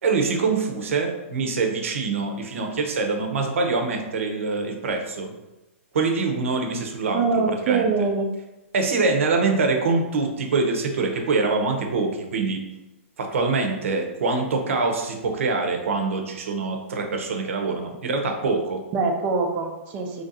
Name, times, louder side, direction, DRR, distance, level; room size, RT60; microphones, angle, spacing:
voice 1, 0.0-5.3 5.9-7.9 8.7-12.6 13.2-18.8, right 3 dB, 65° right, 3 dB, 0.7 m, -24 dB
voice 2, 7.1-8.3 18.9-20.2, right 4 dB, 20° right, 3 dB, 0.4 m, -23 dB
3.2 x 2.6 x 3.9 m, 1.0 s
hypercardioid pair, 170°, 8 cm